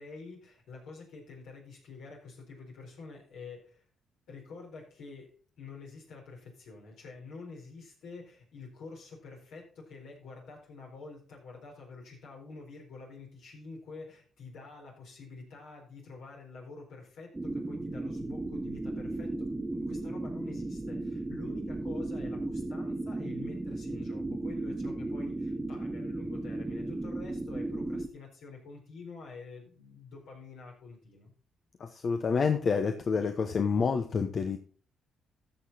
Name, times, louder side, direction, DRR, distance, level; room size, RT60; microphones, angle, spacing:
voice 1, 0.0-3.8 4.3-31.3, left 4 dB, 75° left, -1 dB, 4.3 m, -48 dB
sound 1, 17.3-28.1, right 2 dB, 20° right, 1.3 m, -35 dB
voice 2, 31.8-34.6, left 5 dB, 55° left, 6 dB, 1.0 m, -28 dB
14.0 x 6.5 x 4.2 m, 0.42 s
supercardioid pair, 50°, 0 cm